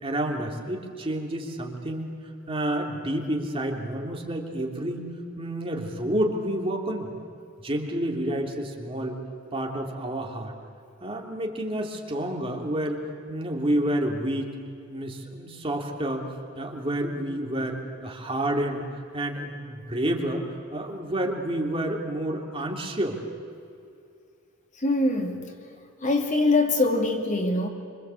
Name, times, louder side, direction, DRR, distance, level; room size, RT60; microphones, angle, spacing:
voice 1, 0.0-2.1 2.5-5.1 5.4-7.1 7.6-9.2 9.5-10.5 11.0-14.5 14.9-16.3 16.5-23.2, right 1 dB, 25° right, 1 dB, 3.1 m, -29 dB
voice 2, 24.8-25.4 26.0-27.7, left 2 dB, 35° left, 3 dB, 2.5 m, -23 dB
26.0 x 25.5 x 8.4 m, 2.6 s
head